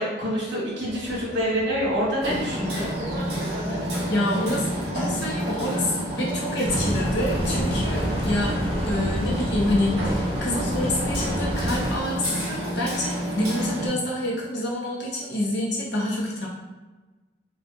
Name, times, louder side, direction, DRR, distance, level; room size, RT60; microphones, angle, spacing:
voice 1, 0.0-2.9, equal, 85° right, -6 dB, 1.3 m, -26 dB
sound 1, 0.9-8.2, equal, 10° right, 0.6 m, -43 dB
Hammer, 2.2-13.9, equal, 70° right, 0.9 m, -29 dB
voice 2, 4.1-8.6 8.8-16.5, left 1 dB, 75° left, -4 dB, 0.9 m, -27 dB
sound 2, 6.6-12.2, equal, 30° right, 1.0 m, -28 dB
4.0 x 2.5 x 2.3 m, 1.2 s
head